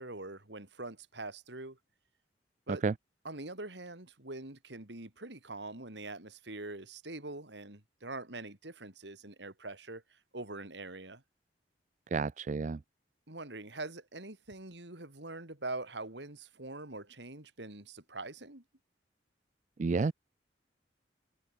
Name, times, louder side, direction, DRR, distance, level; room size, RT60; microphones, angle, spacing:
voice 1, 0.0-1.8 2.7-2.8 3.3-11.2 13.3-18.6, right 2 dB, 75° right, 3.5 m, -44 dB
voice 2, 12.1-12.8 19.8-20.1, right 4 dB, 40° right, 0.4 m, -30 dB
head